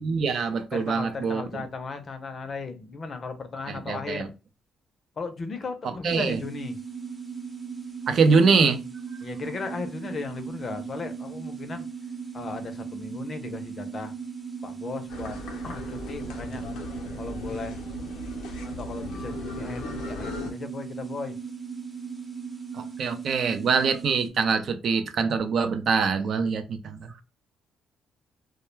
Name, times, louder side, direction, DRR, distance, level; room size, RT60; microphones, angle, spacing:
voice 1, 0.0-1.6 3.7-4.3 6.0-6.4 8.1-8.8 22.7-27.1, right 5 dB, 60° right, 0.4 m, -24 dB
voice 2, 0.7-4.3 5.2-6.8 9.2-11.9 12.3-14.1 14.6-15.4 15.6-16.6 17.2-17.8 18.6-21.4, left 4 dB, 45° left, 0.5 m, -36 dB
sound 1, 6.1-24.3, right 6 dB, 25° right, 0.7 m, -37 dB
sound 2, 15.1-20.5, left 3 dB, 90° left, 0.5 m, -38 dB
2.2 x 2.1 x 3.0 m
cardioid pair, 90°, 0 cm